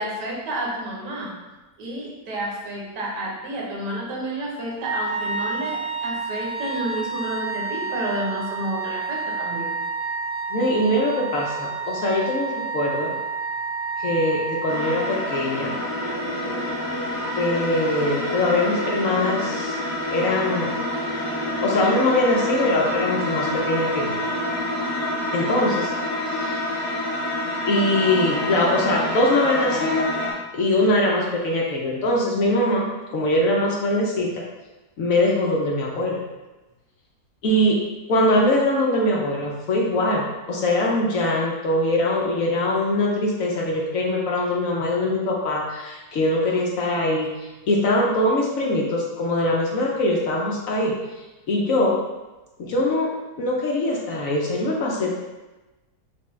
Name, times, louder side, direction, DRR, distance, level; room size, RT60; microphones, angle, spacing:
voice 1, 0.0-1.4 1.8-9.8, right 1 dB, 85° right, -2 dB, 1.5 m, -30 dB
Wind instrument woodwind instrument, 4.8-15.6, right 4 dB, 65° right, 1.1 m, -30 dB
voice 2, 10.5-13.1 14.0-15.7 17.3-19.8 20.1-20.7 21.6-24.1 25.3-25.9 26.3-26.7 27.7-30.1 30.5-34.4 35.0-36.2 37.4-51.0 51.5-52.0 52.6-53.1 53.4-55.1, left 1 dB, 65° left, -2 dB, 0.9 m, -22 dB
sound 1, 14.7-30.3, left 1 dB, 45° left, 1.6 m, -27 dB
5.9 x 2.2 x 3.1 m, 1.1 s
omnidirectional pair, 1.7 m